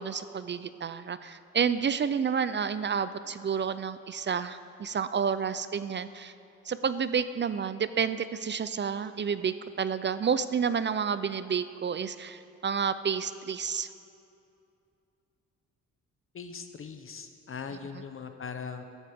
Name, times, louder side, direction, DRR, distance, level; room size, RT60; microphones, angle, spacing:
voice 1, 0.0-6.3 6.7-13.9, right 6 dB, 40° right, 13 dB, 0.5 m, -30 dB
voice 2, 16.3-18.8, left 6 dB, 45° left, 7 dB, 0.8 m, -40 dB
16.0 x 12.5 x 3.6 m, 2.6 s
cardioid pair, 80°, 30 cm